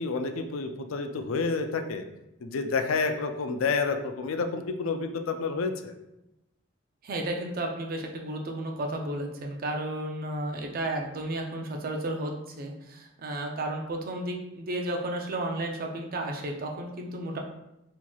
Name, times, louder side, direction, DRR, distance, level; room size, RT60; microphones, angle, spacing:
voice 1, 0.0-2.0 2.4-5.9, left 4 dB, 80° left, 7 dB, 0.4 m, -29 dB
voice 2, 7.0-17.4, right 1 dB, 45° right, 2 dB, 0.5 m, -33 dB
4.3 x 2.9 x 2.3 m, 0.90 s
head